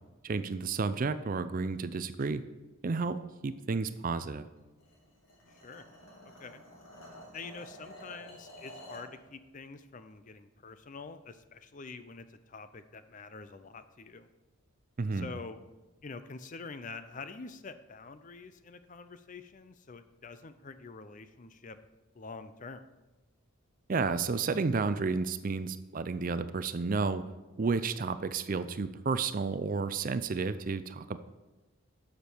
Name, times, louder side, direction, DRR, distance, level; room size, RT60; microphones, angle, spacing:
voice 1, 0.2-2.4 2.8-3.2 3.4-4.4 15.0-15.3 23.9-27.2 27.6-31.2, right 4 dB, 40° right, 12 dB, 0.4 m, -31 dB
sound 1, 4.8-9.1, equal, 65° left, 2.8 m, -50 dB
voice 2, 5.5-5.8 6.4-6.6 7.3-14.3 15.1-15.6 16.0-21.8 22.1-22.9, left 4 dB, 35° left, 11 dB, 0.5 m, -46 dB
12.0 x 6.7 x 4.5 m, 1.1 s
head